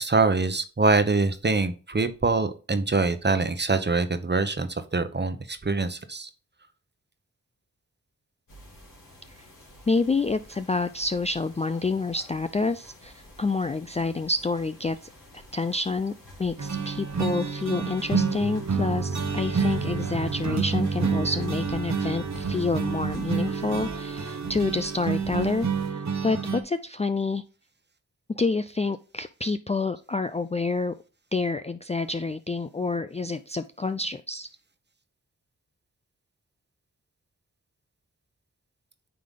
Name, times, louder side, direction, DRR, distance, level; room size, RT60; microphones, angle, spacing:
voice 1, 0.0-6.3, right 3 dB, 30° right, 10 dB, 1.0 m, -24 dB
sound 1, 8.5-25.9, equal, 70° left, 2.8 m, -48 dB
voice 2, 9.9-16.1 16.4-27.4 28.3-31.0 31.3-34.5, left 3 dB, 20° left, 10 dB, 0.4 m, -28 dB
sound 2, 16.6-26.6, right 5 dB, 50° right, 1.1 m, -28 dB
9.3 x 3.4 x 3.7 m, 0.35 s
cardioid pair, 45°, 35 cm